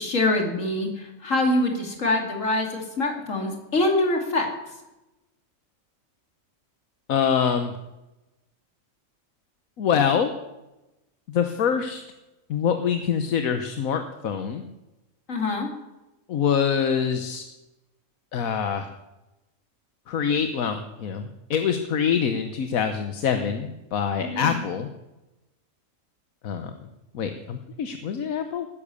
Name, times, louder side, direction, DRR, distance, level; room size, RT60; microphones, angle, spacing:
voice 1, 0.0-4.5 15.3-15.7 24.2-24.6, left 2 dB, 65° left, 3 dB, 2.9 m, -24 dB
voice 2, 7.1-7.7 9.8-10.3 11.3-12.0 12.5-14.6 16.3-17.4 18.3-18.9 20.1-24.9 26.4-26.7 27.1-28.7, left 7 dB, 85° left, 7 dB, 1.4 m, -25 dB
18.5 x 10.0 x 6.9 m, 1.0 s
omnidirectional pair, 1.4 m